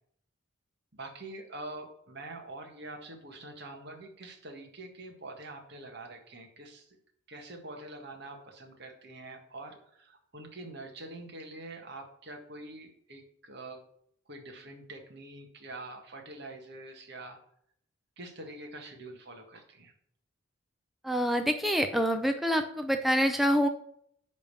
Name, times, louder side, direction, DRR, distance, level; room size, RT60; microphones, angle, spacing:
voice 1, 0.9-7.0 7.3-13.8 14.3-17.4 18.2-19.9, right 2 dB, 50° right, 3 dB, 1.7 m, -45 dB
voice 2, 21.0-23.7, equal, ahead, 5 dB, 0.6 m, -26 dB
10.0 x 3.7 x 6.8 m, 0.69 s
head